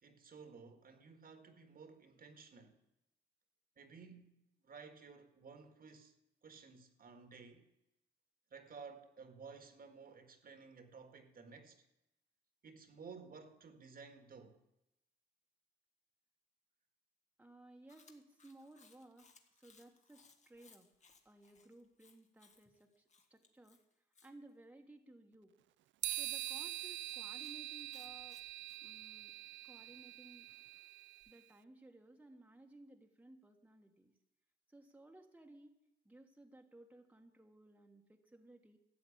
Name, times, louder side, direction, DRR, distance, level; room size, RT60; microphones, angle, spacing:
voice 1, 0.0-2.8 3.8-4.3 4.6-6.1 6.4-7.7 8.5-11.9 12.6-14.6, right 5 dB, 45° right, 1.8 m, -55 dB
voice 2, 17.4-20.9 21.2-23.0 23.3-23.8 24.2-25.5 26.1-28.4 28.8-29.3 29.6-30.5 31.3-34.1 34.7-35.8 36.0-38.8, right 2 dB, 5° right, 1.5 m, -59 dB
Chewing mastication, 17.9-24.3 26.1-28.8, left 4 dB, 35° left, 1.8 m, -66 dB
sound 1, 26.0-31.3, right 16 dB, 70° right, 0.4 m, -44 dB
13.0 x 8.0 x 8.6 m
cardioid pair, 90°, 20 cm